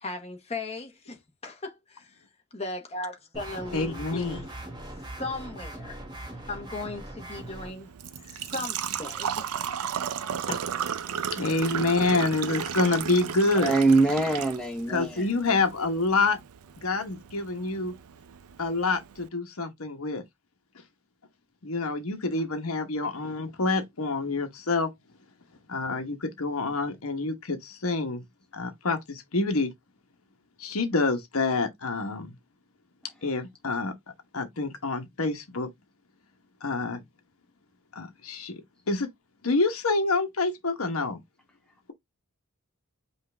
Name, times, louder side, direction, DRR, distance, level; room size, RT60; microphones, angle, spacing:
voice 1, 0.0-2.2 2.5-4.6 5.0-6.0 6.4-7.9 8.2-9.5 10.5-10.6, left 2 dB, 30° left, 1.1 m, -37 dB
sound 1, 3.3-7.7, right 1 dB, 20° right, 1.1 m, -40 dB
voice 2, 3.7-4.4 11.3-13.7 14.9-16.4 16.8-17.9 18.6-20.2 21.6-24.9 25.7-28.2 28.5-29.7 30.6-32.3 33.2-33.9 34.3-35.7 36.6-37.0 37.9-38.6 38.9-39.1 39.4-41.2, left 3 dB, 70° left, 1.1 m, -27 dB
Engine / Trickle dribble / Fill (with liquid), 7.3-19.3, right 8 dB, 80° right, 0.5 m, -35 dB
voice 3, 13.6-15.2, right 3 dB, 5° left, 0.6 m, -23 dB
5.6 x 2.6 x 3.3 m
head